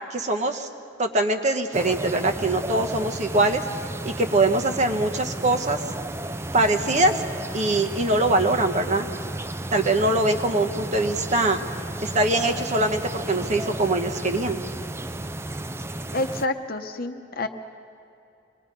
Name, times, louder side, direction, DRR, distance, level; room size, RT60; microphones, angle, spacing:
voice 1, 0.1-0.7 1.0-3.6 4.0-5.9 6.5-7.2 7.5-9.1 9.7-11.6 12.0-14.6, right 2 dB, 40° right, 4 dB, 1.1 m, -23 dB
sound 1, 1.7-16.5, right 1 dB, 15° right, 0.4 m, -33 dB
voice 2, 16.1-17.5, left 2 dB, 50° left, 7 dB, 1.0 m, -28 dB
25.5 x 20.5 x 5.3 m, 2.7 s
head